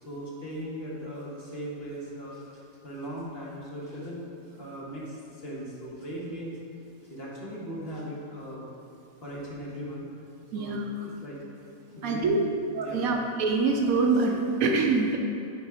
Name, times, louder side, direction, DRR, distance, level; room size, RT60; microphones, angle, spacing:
voice 1, 0.0-6.6 7.0-8.7 9.2-10.1 10.5-11.4 11.9-12.5 12.8-13.2, equal, 40° left, -5 dB, 1.4 m, -38 dB
voice 2, 10.5-10.8 12.0-12.4 12.8-15.2, right 4 dB, 70° right, 2 dB, 1.0 m, -25 dB
8.3 x 4.2 x 4.8 m, 2.7 s
omnidirectional pair, 1.6 m